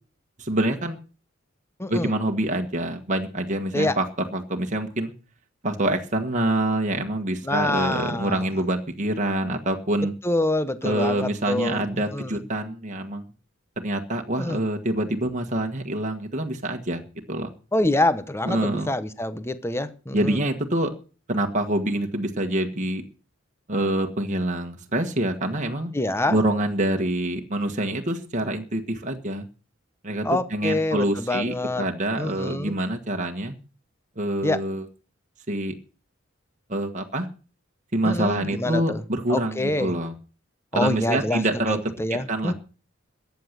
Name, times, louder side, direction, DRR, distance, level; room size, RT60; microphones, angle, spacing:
voice 1, 0.4-1.0 1.9-4.1 4.3-5.1 5.6-10.1 10.8-13.2 13.8-17.0 17.3-17.5 18.4-18.9 20.1-20.9 21.3-23.0 23.7-25.9 26.3-29.5 30.0-33.6 34.2-34.8 35.5-35.7 36.7-37.3 37.9-40.1 40.7-41.8 42.1-42.5, right 1 dB, 40° right, 3 dB, 1.6 m, -26 dB
voice 2, 1.8-2.1 3.7-4.0 7.4-8.5 10.2-12.3 14.4-14.6 17.7-20.4 25.9-26.4 30.2-31.9 32.2-32.7 34.4-34.6 38.0-39.0 39.3-39.9 40.7-42.5, left 1 dB, 15° left, 13 dB, 0.9 m, -26 dB
14.5 x 9.5 x 6.7 m, 0.37 s
head